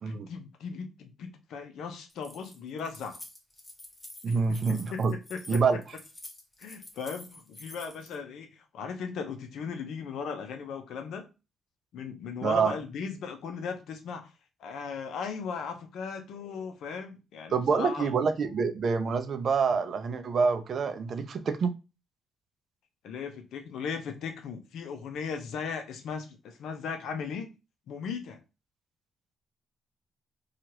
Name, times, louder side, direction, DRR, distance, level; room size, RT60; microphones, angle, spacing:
voice 1, 0.1-3.2 4.3-4.4 4.9-5.0 5.3-5.6 6.6-11.3 11.9-14.3 14.6-18.1 23.0-27.5 27.9-28.4, left 6 dB, 75° left, 0.6 m, -37 dB
Keys jangling, 2.1-8.2, left 1 dB, 15° left, 0.7 m, -48 dB
voice 2, 4.2-5.1 5.5-5.8 12.4-12.7 17.5-21.7, right 5 dB, 50° right, 0.4 m, -26 dB
2.8 x 2.4 x 2.8 m
cardioid pair, 90°, 0 cm